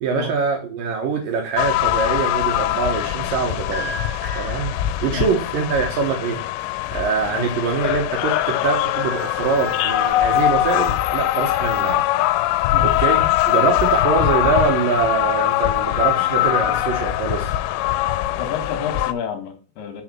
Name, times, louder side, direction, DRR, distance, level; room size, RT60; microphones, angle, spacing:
voice 1, 0.0-4.0 4.3-4.8 5.0-6.4 6.9-12.0 12.8-17.5, right 5 dB, 65° right, 2 dB, 2.4 m, -23 dB
sound 1, 1.6-19.1, left 14 dB, 85° left, 2.8 m, -22 dB
sound 2, 3.7-5.2 7.2-7.9 8.3-10.1, left 1 dB, 10° right, 2.1 m, -34 dB
voice 2, 18.4-20.0, left 6 dB, 70° left, 6 dB, 3.1 m, -29 dB
6.2 x 4.7 x 5.9 m, 0.36 s
omnidirectional pair, 5.0 m